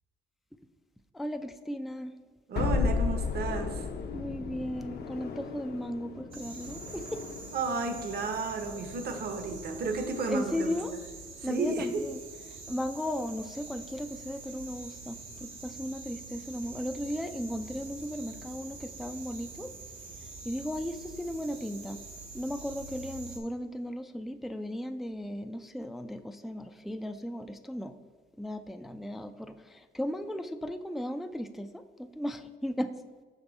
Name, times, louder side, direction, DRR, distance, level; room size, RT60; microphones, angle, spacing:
voice 1, 1.1-2.1 4.1-7.2 10.3-10.9 11.4-12.2 12.5-19.7 20.4-22.0 22.3-27.9 28.4-32.9, equal, ahead, 8 dB, 0.3 m, -36 dB
voice 2, 2.5-3.9 7.5-10.7 11.4-12.0, right 3 dB, 55° right, 6 dB, 0.9 m, -32 dB
sound 1, 2.6-7.7, left 5 dB, 55° left, 0.7 m, -33 dB
sound 2, 6.3-23.4, right 3 dB, 85° right, 1.3 m, -45 dB
6.0 x 5.3 x 4.1 m, 1.5 s
cardioid pair, 90°, 20 cm